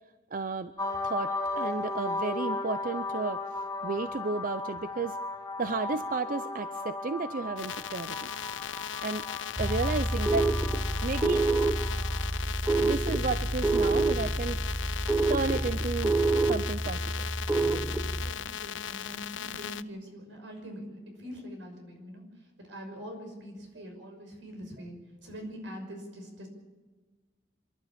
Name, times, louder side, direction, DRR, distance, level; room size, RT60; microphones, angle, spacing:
voice 1, 0.3-0.7 1.0-3.4 3.8-5.2 5.6-8.3 9.0-9.3 9.6-10.5 11.0-11.5 12.8-14.6 15.3-17.3, right 3 dB, 45° right, 13 dB, 0.5 m, -32 dB
sound 1, 0.8-12.4, left 3 dB, 20° left, 1.2 m, -36 dB
sound 2, 7.6-19.8, left 9 dB, 90° left, 0.6 m, -38 dB
sound 3, 9.6-18.3, right 2 dB, 10° right, 0.9 m, -28 dB
voice 2, 18.2-22.2 22.6-25.0 25.2-26.5, equal, 90° right, 4 dB, 6.0 m, -43 dB
27.5 x 12.0 x 8.5 m, 1.3 s
head